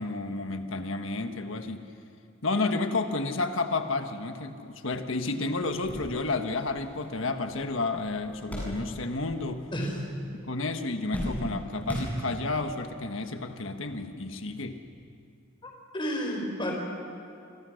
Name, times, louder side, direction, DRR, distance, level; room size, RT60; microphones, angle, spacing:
voice 1, 0.0-1.9 2.4-9.7 10.5-14.8, left 3 dB, 65° left, 6 dB, 1.5 m, -31 dB
sound 1, 5.5-9.3 9.6-10.3 10.6-12.7 13.4-13.5 14.8-15.0, equal, 10° left, 8.0 m, -37 dB
voice 2, 15.6-16.7, equal, 25° left, 0 dB, 5.2 m, -31 dB
27.5 x 25.5 x 6.5 m, 2.4 s
head